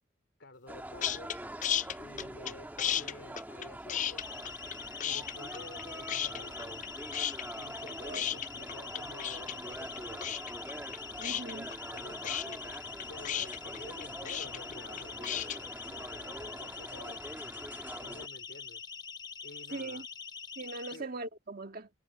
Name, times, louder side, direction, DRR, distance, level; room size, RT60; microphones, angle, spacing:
voice 1, 0.4-1.3 2.0-4.2 5.0-6.9 7.6-10.5 11.9-12.8 13.1-17.3 18.0-18.8 19.4-20.0 20.9-21.1, left 2 dB, 70° left, 3.1 m, -51 dB
sound 1, 0.7-18.3, right 1 dB, 10° right, 1.4 m, -45 dB
sound 2, 1.0-1.4 1.6-2.5 2.8-4.8 5.0-5.8 6.1-6.9 7.1-15.6, left 10 dB, 40° left, 0.4 m, -34 dB
Siren, 4.2-21.0, left 5 dB, 20° left, 0.9 m, -45 dB
voice 2, 8.1-8.4 11.2-11.9 19.7-20.1 20.6-21.9, right 3 dB, 50° right, 1.7 m, -41 dB
head